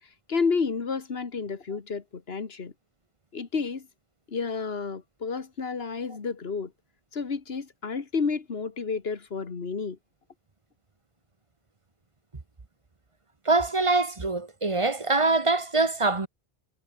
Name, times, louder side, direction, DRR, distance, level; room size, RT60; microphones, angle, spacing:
voice 1, 0.3-2.7 3.3-3.9 4.3-6.7 7.1-10.0, left 5 dB, 65° left, 1.9 m, -30 dB
voice 2, 13.4-16.3, right 3 dB, 30° right, 1.3 m, -24 dB
omnidirectional pair, 1.1 m